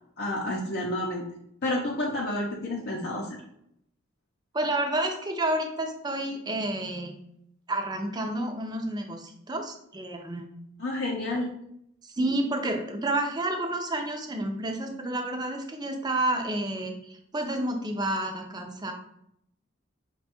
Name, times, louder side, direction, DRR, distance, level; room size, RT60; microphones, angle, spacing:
voice 1, 0.2-1.2 1.6-3.4 10.8-11.5, left 1 dB, 50° left, -2 dB, 0.6 m, -30 dB
voice 2, 4.5-7.1 7.7-10.5 12.0-18.9, right 1 dB, 20° right, 4 dB, 0.5 m, -30 dB
4.4 x 2.3 x 4.2 m, 0.74 s
head